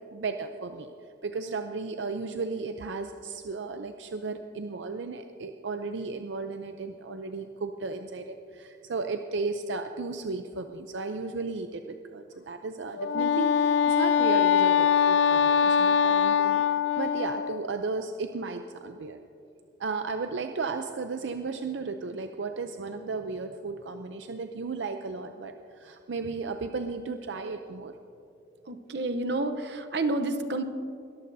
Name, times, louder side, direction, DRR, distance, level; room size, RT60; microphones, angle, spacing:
voice 1, 0.1-0.9 1.2-19.2 19.8-27.9, right 4 dB, 75° right, 6 dB, 0.5 m, -34 dB
Wind instrument woodwind instrument, 13.0-17.6, left 7 dB, 70° left, 0.3 m, -23 dB
voice 2, 28.6-30.6, right 2 dB, 60° right, 9 dB, 0.8 m, -29 dB
21.0 x 14.0 x 2.7 m, 2.6 s
head